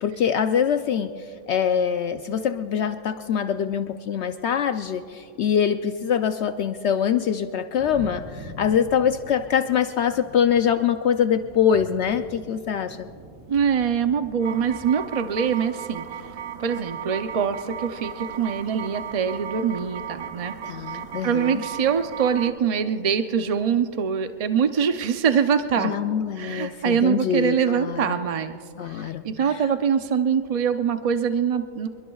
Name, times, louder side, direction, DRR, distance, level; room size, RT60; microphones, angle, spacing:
voice 1, 0.0-13.1 20.6-21.6 25.8-28.2 28.8-29.2 29.5-29.6, left 8 dB, 65° left, 9 dB, 0.8 m, -24 dB
sound 1, 7.8-14.9, equal, 20° right, 3.3 m, -44 dB
voice 2, 13.5-16.2 16.6-20.5 20.9-25.9 26.4-28.6 28.9-31.9, right 7 dB, 55° right, 8 dB, 0.4 m, -24 dB
sound 2, 14.4-22.5, right 8 dB, 90° right, 1.2 m, -36 dB
28.5 x 22.0 x 2.3 m, 2.4 s
omnidirectional pair, 1.3 m